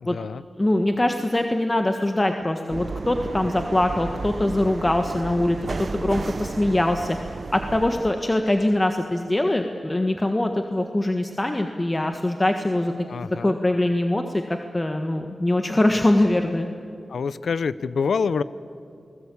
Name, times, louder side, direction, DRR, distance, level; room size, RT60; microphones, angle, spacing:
voice 1, 0.0-0.4 13.0-13.5 17.1-18.4, left 5 dB, 90° left, 16 dB, 0.7 m, -26 dB
voice 2, 0.6-7.2 7.5-16.7, left 1 dB, 25° left, 5 dB, 1.5 m, -23 dB
sound 1, 2.7-8.1, right 3 dB, 55° right, 1.1 m, -33 dB
29.5 x 20.5 x 8.6 m, 2.4 s
cardioid pair, 65°, 0 cm